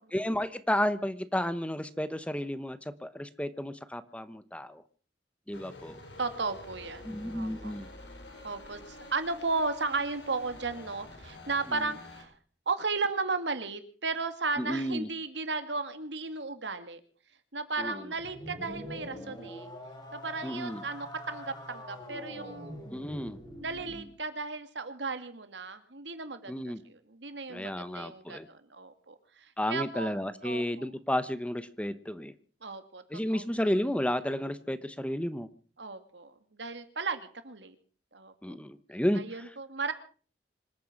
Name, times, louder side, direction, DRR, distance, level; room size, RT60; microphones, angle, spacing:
voice 1, 0.1-4.8 5.5-6.0 7.0-7.9 11.7-11.9 14.6-15.1 17.8-18.1 20.4-20.8 22.9-23.4 26.5-26.8 27.5-28.5 29.6-32.3 33.1-35.5 38.4-39.2, equal, 5° left, 13 dB, 0.9 m, -32 dB
sound 1, 5.5-12.2, left 1 dB, 80° left, 4.8 m, -48 dB
voice 2, 6.2-7.7 8.4-12.3 12.7-17.0 17.5-19.7 20.1-22.8 23.6-30.1 30.4-30.9 32.6-33.0 33.3-33.4 35.8-36.3 36.6-37.8 38.1-38.3 39.2-39.9, right 3 dB, 80° right, 9 dB, 2.2 m, -35 dB
sound 2, 18.2-24.1, equal, 25° left, 5.0 m, -44 dB
26.0 x 9.3 x 6.0 m, 0.41 s
head